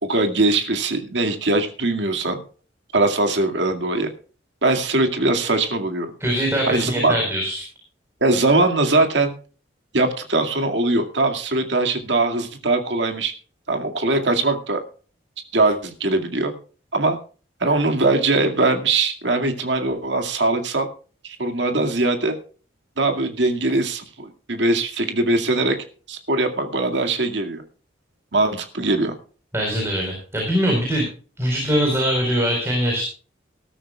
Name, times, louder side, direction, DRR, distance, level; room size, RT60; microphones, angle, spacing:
voice 1, 0.0-2.4 2.9-4.1 4.6-6.1 6.7-7.1 8.2-9.3 9.9-13.3 13.7-14.8 15.5-16.5 16.9-17.2 17.6-20.9 21.2-22.4 23.0-25.8 26.1-27.6 28.3-29.1, right 2 dB, 70° right, 5 dB, 2.2 m, -21 dB
voice 2, 6.2-7.6 29.5-31.0 31.4-33.0, equal, 15° right, -1 dB, 4.4 m, -22 dB
19.5 x 12.5 x 2.4 m, 0.38 s
head